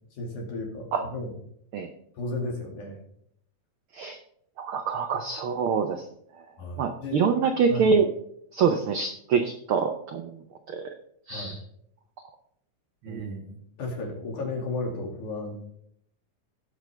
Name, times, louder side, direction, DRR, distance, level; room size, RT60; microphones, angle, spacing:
voice 1, 0.1-1.3 2.2-3.0 6.6-7.9 11.3-11.6 13.1-15.5, left 2 dB, 85° left, 1 dB, 3.8 m, -34 dB
voice 2, 4.6-6.0 6.8-8.1 8.5-10.4 10.7-10.8 11.3-11.5 13.1-13.3, right 6 dB, 85° right, 6 dB, 1.1 m, -25 dB
18.0 x 6.3 x 3.3 m, 0.71 s
omnidirectional pair, 3.4 m